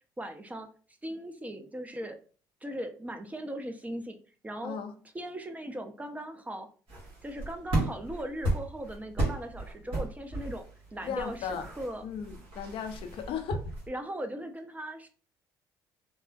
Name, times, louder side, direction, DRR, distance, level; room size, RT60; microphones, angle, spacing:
voice 1, 0.2-0.7 1.0-2.2 2.6-4.2 4.4-4.8 5.1-6.7 7.2-10.6 10.9-12.0 13.9-15.1, right 1 dB, 15° right, 6 dB, 0.6 m, -38 dB
voice 2, 4.6-4.9 11.0-11.7 12.0-13.6, left 7 dB, 60° left, 8 dB, 0.5 m, -36 dB
sound 1, 6.9-13.9, right 1 dB, 60° right, 1.5 m, -35 dB
3.3 x 2.1 x 2.5 m, 0.39 s
hypercardioid pair, 55°, 10 cm